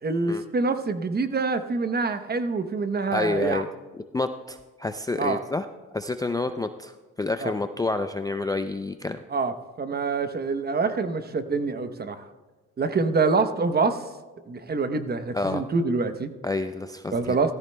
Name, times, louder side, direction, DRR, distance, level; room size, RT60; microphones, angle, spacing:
voice 1, 0.0-3.6 5.2-5.4 7.4-7.5 9.3-12.3 12.8-14.0 14.5-16.3 17.1-17.5, right 4 dB, 30° right, 10 dB, 0.8 m, -26 dB
voice 2, 3.1-3.7 4.1-5.7 5.9-6.9 7.2-9.2 15.3-15.6 16.4-17.4, left 3 dB, 15° left, 8 dB, 0.4 m, -28 dB
17.0 x 14.5 x 2.2 m, 1.3 s
cardioid pair, 90°, 30 cm